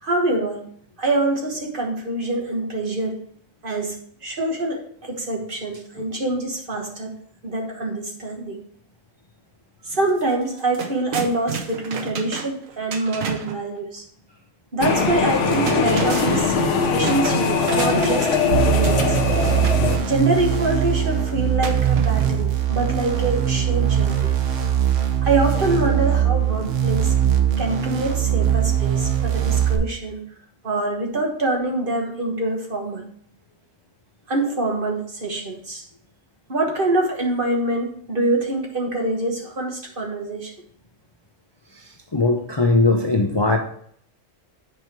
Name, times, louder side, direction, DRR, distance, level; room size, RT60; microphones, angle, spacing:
voice 1, 0.0-0.6 1.0-3.2 3.6-7.1 7.4-8.6 9.8-14.0 14.7-16.5 16.9-19.2 20.0-24.3 25.2-27.1 27.6-30.2 30.6-33.0 34.3-35.8 36.5-40.5, right 2 dB, 45° right, 1.5 m, -25 dB
sound 1, 10.1-10.2 10.5-13.6 15.3-18.5 18.8-19.9 21.6-22.5, right 7 dB, 90° right, 1.3 m, -31 dB
sound 2, 14.8-20.0, left 5 dB, 65° left, 1.2 m, -21 dB
sound 3, 18.5-29.8, right 10 dB, 70° right, 1.2 m, -21 dB
voice 2, 42.1-43.6, left 3 dB, 25° left, 0.6 m, -19 dB
8.2 x 4.6 x 4.6 m
omnidirectional pair, 1.3 m